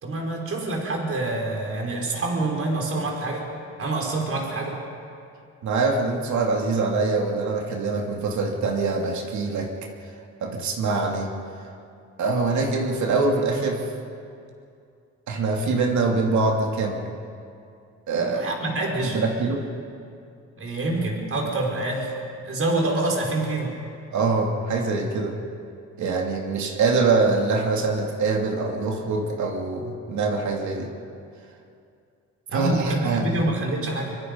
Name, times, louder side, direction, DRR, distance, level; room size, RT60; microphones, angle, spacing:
voice 1, 0.0-3.5 3.8-4.8 18.1-19.2 20.6-22.1 22.4-23.8 32.5-34.2, right 2 dB, 45° right, 0 dB, 5.2 m, -26 dB
voice 2, 5.6-9.7 10.4-11.3 12.2-13.9 15.3-17.1 18.1-18.5 19.1-19.7 24.1-25.4 26.0-30.9 32.5-33.4, right 3 dB, 70° right, 1 dB, 2.7 m, -24 dB
24.0 x 23.5 x 5.5 m, 2.5 s
cardioid pair, 90°, 30 cm